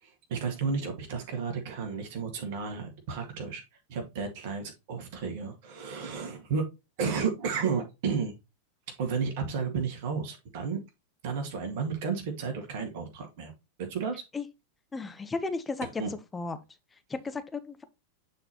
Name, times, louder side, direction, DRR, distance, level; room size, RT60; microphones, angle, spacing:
voice 1, 0.0-3.6 3.9-6.7 7.0-8.3 9.0-10.8 11.2-13.5 13.8-14.2 16.0-16.1, right 5 dB, 50° right, 1.8 m, -32 dB
voice 2, 14.9-15.9 16.3-16.6 17.1-17.8, left 3 dB, 15° left, 0.8 m, -34 dB
9.0 x 4.1 x 2.9 m
figure-of-eight pair, 90°, 0 cm